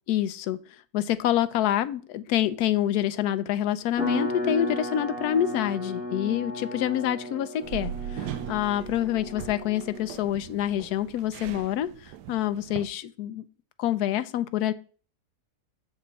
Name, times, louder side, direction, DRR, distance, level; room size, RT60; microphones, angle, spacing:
voice 1, 0.1-0.6 0.9-11.9 12.3-13.4 13.8-14.7, left 11 dB, 75° left, 13 dB, 1.1 m, -27 dB
sound 1, 4.0-10.2, equal, 5° right, 1.8 m, -34 dB
sound 2, 7.6-12.9, right 12 dB, 80° right, 1.1 m, -39 dB
7.2 x 5.4 x 4.1 m, 0.40 s
omnidirectional pair, 1.8 m